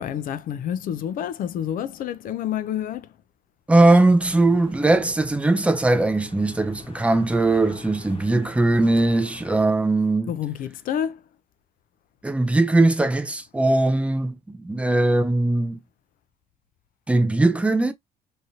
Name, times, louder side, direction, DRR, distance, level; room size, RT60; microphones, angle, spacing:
voice 1, 0.0-3.1 10.3-11.2, left 9 dB, 55° left, 0.4 m, -28 dB
voice 2, 3.7-10.3 12.2-15.8 17.1-17.9, right 2 dB, 5° right, 0.4 m, -20 dB
sound 1, 4.0-9.6, left 4 dB, 30° left, 0.9 m, -44 dB
2.8 x 2.6 x 2.6 m
cardioid pair, 110°, 17 cm